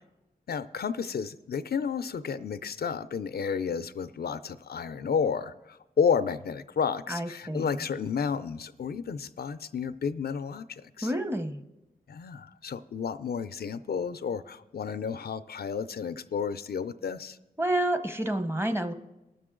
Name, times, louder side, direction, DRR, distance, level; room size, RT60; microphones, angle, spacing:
voice 1, 0.5-11.1 12.1-17.4, left 6 dB, 80° left, 13 dB, 0.4 m, -31 dB
voice 2, 7.1-7.8 11.0-11.6 17.6-18.9, right 1 dB, 15° right, 9 dB, 0.8 m, -29 dB
18.5 x 6.7 x 3.7 m, 1.0 s
cardioid pair, 45°, 16 cm